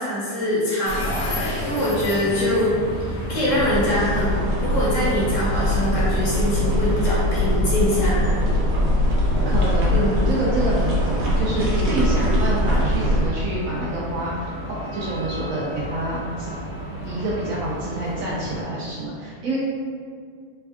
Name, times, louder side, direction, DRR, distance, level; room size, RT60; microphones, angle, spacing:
voice 1, 0.0-8.3 9.9-10.1, left 1 dB, 60° left, -7 dB, 1.0 m, -24 dB
sound 1, 0.8-18.6, equal, 85° left, 1.3 m, -33 dB
sound 2, 3.6-13.3, equal, 85° right, 1.4 m, -22 dB
voice 2, 9.5-16.6 17.0-19.6, right 1 dB, 70° right, -6 dB, 0.8 m, -27 dB
3.4 x 2.3 x 3.4 m, 2.1 s
omnidirectional pair, 1.8 m